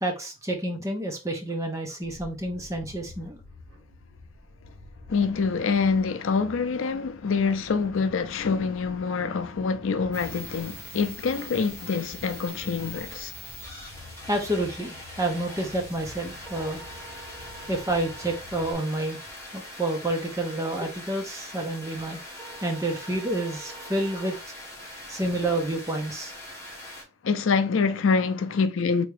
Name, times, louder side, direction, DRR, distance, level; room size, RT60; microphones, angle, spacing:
voice 1, 0.0-3.4 14.3-16.8 17.7-19.2 19.5-24.4 25.1-26.3, right 1 dB, 15° right, 0.8 m, -29 dB
sound 1, 2.0-18.7, left 2 dB, 55° right, 1.8 m, -48 dB
voice 2, 5.1-13.3 27.2-29.1, left 5 dB, 70° left, 0.4 m, -25 dB
sound 2, 10.1-27.0, left 1 dB, 10° left, 1.9 m, -42 dB
3.7 x 3.4 x 3.3 m
head